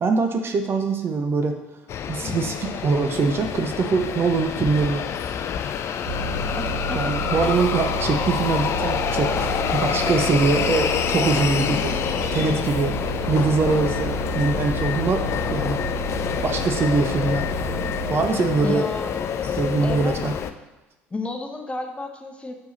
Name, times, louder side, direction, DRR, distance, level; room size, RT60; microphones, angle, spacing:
voice 1, 0.0-1.5 2.1-5.0 6.9-11.9 12.3-13.0 13.3-15.8 16.4-17.5 18.1-18.9 19.6-20.3, right 4 dB, 40° right, 5 dB, 0.7 m, -23 dB
sound 1, 1.9-20.5, left 8 dB, 45° left, 0.4 m, -27 dB
Bus, 6.1-18.1, right 3 dB, 85° right, 1.1 m, -31 dB
voice 2, 6.6-7.6 18.6-19.1 19.8-20.3 21.1-22.5, left 2 dB, 20° left, 4 dB, 0.9 m, -32 dB
6.7 x 4.6 x 4.1 m, 1.1 s
hypercardioid pair, 60°, 6 cm